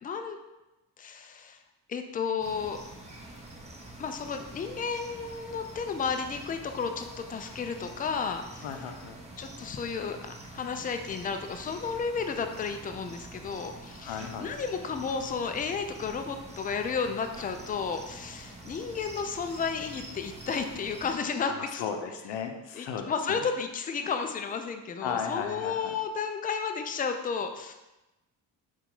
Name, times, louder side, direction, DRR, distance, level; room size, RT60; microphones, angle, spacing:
voice 1, 0.0-0.4 1.0-1.6 1.9-2.8 4.0-8.6 9.4-21.8 22.8-27.7, left 5 dB, 20° left, 6 dB, 0.4 m, -33 dB
sound 1, 2.4-21.1, right 2 dB, 15° right, 1.0 m, -46 dB
voice 2, 8.6-9.2 14.0-14.5 21.4-23.5 25.0-25.9, left 6 dB, 65° left, 5 dB, 0.7 m, -35 dB
4.2 x 2.5 x 3.8 m, 1.0 s
hypercardioid pair, 55°, 47 cm